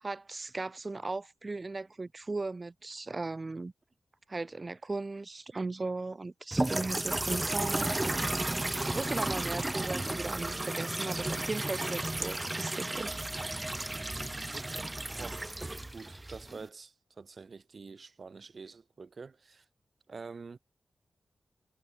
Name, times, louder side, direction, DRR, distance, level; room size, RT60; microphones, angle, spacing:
voice 1, 0.0-3.7 4.3-13.3, right 3 dB, 40° right, 1.5 m, -37 dB
sound 1, 6.5-16.7, right 2 dB, 25° right, 0.7 m, -33 dB
voice 2, 14.4-15.7 15.9-19.7 20.1-20.6, right 4 dB, 60° right, 2.4 m, -47 dB
cardioid pair, 45°, 0 cm